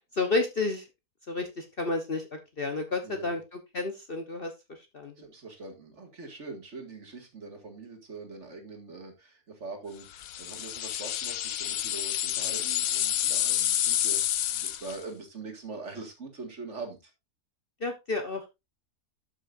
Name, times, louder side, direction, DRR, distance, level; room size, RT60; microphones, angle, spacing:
voice 1, 0.2-0.8 1.3-2.2 2.6-3.4 3.7-4.5 4.9-5.1 17.8-18.5, left 3 dB, 40° left, 1.0 m, -30 dB
voice 2, 3.0-3.4 5.2-17.1, right 3 dB, 45° right, 2.3 m, -43 dB
sound 1, 10.2-15.0, left 11 dB, 70° left, 1.0 m, -29 dB
12.0 x 6.3 x 2.5 m
omnidirectional pair, 1.7 m